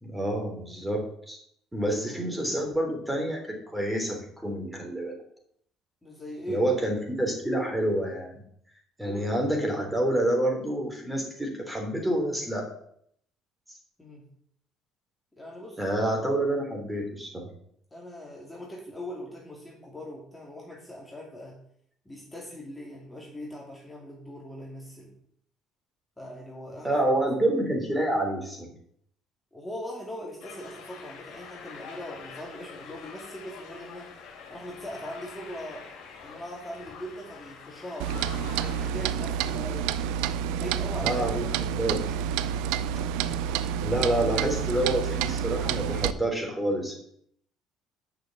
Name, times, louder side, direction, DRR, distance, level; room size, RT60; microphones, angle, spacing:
voice 1, 0.0-1.4 1.7-3.4 3.7-5.1 6.5-8.4 9.0-12.7 15.8-17.4 26.8-28.7 41.0-42.1 43.8-47.0, right 1 dB, 10° right, 1 dB, 3.4 m, -28 dB
voice 2, 6.0-6.8 9.0-9.4 14.0-14.3 15.3-15.8 17.9-21.6 22.0-25.1 26.2-27.0 29.5-34.1 34.5-35.9 36.2-40.0 40.6-41.3, equal, 10° left, -3 dB, 2.7 m, -40 dB
sound 1, 30.4-38.9, left 5 dB, 70° left, 2.4 m, -45 dB
Clock, 38.0-46.1, right 9 dB, 75° right, 0.4 m, -29 dB
6.6 x 6.2 x 7.1 m, 0.67 s
hypercardioid pair, 65°, 0 cm